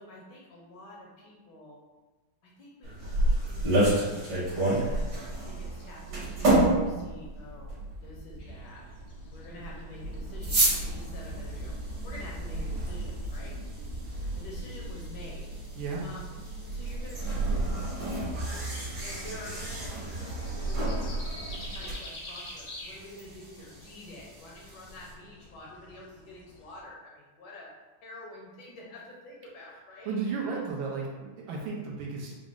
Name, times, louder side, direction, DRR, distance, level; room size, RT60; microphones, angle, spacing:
voice 1, 0.0-1.8 2.4-5.1 5.5-8.8 9.3-11.8 12.0-13.6 14.3-15.5 16.0-18.2 19.0-27.7 28.0-30.6, left 1 dB, 70° left, -3 dB, 1.2 m, -48 dB
sound 1, 2.8-21.9, right 1 dB, 55° right, 1.8 m, -31 dB
sound 2, 8.4-26.8, left 1 dB, 85° left, 0.6 m, -50 dB
sound 3, 10.4-25.1, right 2 dB, 35° right, 0.9 m, -38 dB
voice 2, 30.0-32.3, right 4 dB, 75° right, -2 dB, 1.5 m, -33 dB
4.8 x 2.1 x 3.6 m, 1.2 s
omnidirectional pair, 2.2 m